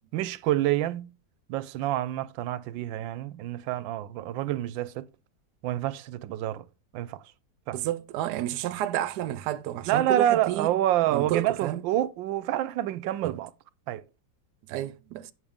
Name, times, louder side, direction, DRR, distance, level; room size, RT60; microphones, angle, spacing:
voice 1, 0.1-1.1 1.5-5.1 5.6-6.7 6.9-7.2 7.7-7.8 9.9-13.5 13.9-14.0, right 13 dB, 90° right, 1.3 m, -27 dB
voice 2, 7.7-10.7 11.1-11.8 13.2-13.4 14.7-15.3, right 12 dB, 70° right, 1.1 m, -30 dB
8.8 x 6.5 x 3.5 m
omnidirectional pair, 2.0 m